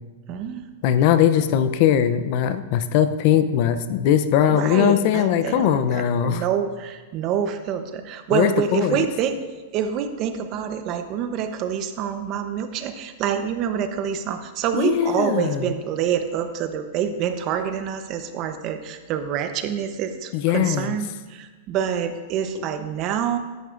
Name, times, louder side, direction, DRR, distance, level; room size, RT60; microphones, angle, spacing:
voice 1, 0.3-0.7 4.5-9.4 9.7-23.4, right 8 dB, 35° right, 8 dB, 0.8 m, -26 dB
voice 2, 0.8-6.4 8.3-9.0 14.8-15.6 20.3-20.9, left 10 dB, 50° left, 11 dB, 0.6 m, -20 dB
13.5 x 10.5 x 2.6 m, 1.3 s
hypercardioid pair, 140°, 0 cm